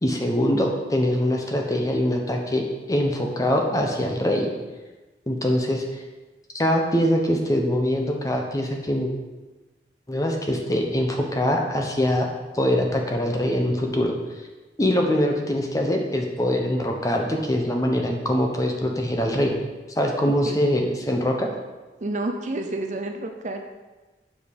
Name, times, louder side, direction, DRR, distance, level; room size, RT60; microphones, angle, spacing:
voice 1, 0.0-4.5 5.3-5.8 6.5-9.1 10.1-12.3 12.5-14.2 14.8-19.5 20.0-21.5, equal, 20° left, 1 dB, 0.8 m, -23 dB
voice 2, 22.0-23.6, right 2 dB, 40° right, 5 dB, 0.6 m, -29 dB
7.1 x 5.1 x 5.3 m, 1.2 s
head